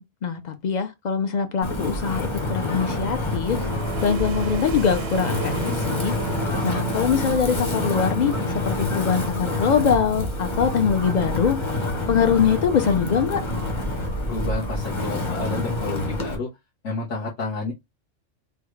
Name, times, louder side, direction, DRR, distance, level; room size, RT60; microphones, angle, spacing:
voice 1, 0.0-3.6 4.0-6.2 6.6-8.4 8.6-11.6 12.1-13.4, left 7 dB, 50° left, 0.5 m, -23 dB
Wind, 1.6-16.4, left 2 dB, 25° left, 0.8 m, -27 dB
sound 1, 3.3-14.9, right 6 dB, 85° right, 1.0 m, -36 dB
voice 2, 14.3-16.5 16.8-17.7, left 3 dB, 75° left, 1.4 m, -30 dB
3.4 x 2.3 x 3.2 m
omnidirectional pair, 1.3 m